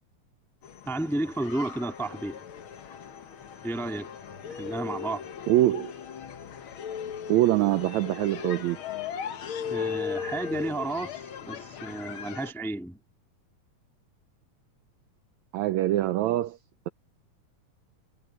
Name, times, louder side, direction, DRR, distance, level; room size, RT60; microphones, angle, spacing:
sound 1, 0.6-12.5, left 7 dB, 60° left, 1.4 m, -38 dB
voice 1, 0.8-2.4 3.6-4.2 4.4-5.3 9.7-13.0, right 2 dB, ahead, 0.6 m, -32 dB
voice 2, 5.5-5.9 7.3-8.8 15.5-16.6, right 15 dB, 90° right, 1.6 m, -24 dB
omnidirectional pair, 3.9 m